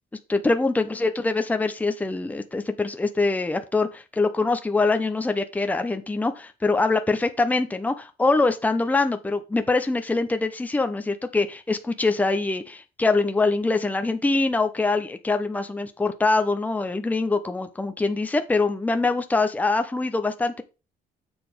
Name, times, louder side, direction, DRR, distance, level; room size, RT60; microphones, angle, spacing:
voice 1, 0.3-20.6, left 3 dB, 10° left, 8 dB, 0.7 m, -24 dB
7.0 x 4.1 x 5.1 m, 0.30 s
cardioid pair, 110°, 17 cm